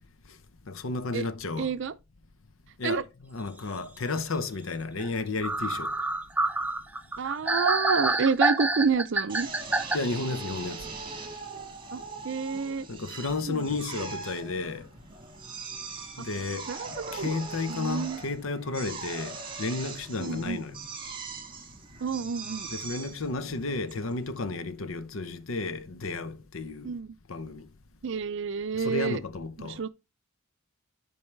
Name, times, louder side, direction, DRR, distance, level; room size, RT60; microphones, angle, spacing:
voice 1, 0.7-1.7 2.8-5.9 9.9-10.9 12.9-14.9 16.2-16.7 17.1-20.8 22.7-26.9 27.3-27.7 28.7-29.8, left 3 dB, 70° left, 0.7 m, -32 dB
voice 2, 1.6-1.9 2.8-3.0 7.2-9.5 11.9-12.9 13.5-13.6 16.7-17.4 17.7-18.2 20.2-20.6 22.0-22.7 26.8-27.1 28.0-29.2 29.6-29.9, right 5 dB, 60° right, 0.5 m, -29 dB
sound 1, 5.0-5.1 5.4-10.0, right 2 dB, 10° right, 0.4 m, -27 dB
Drill, 9.3-24.6, right 4 dB, 25° right, 1.7 m, -41 dB
10.5 x 4.7 x 3.2 m
head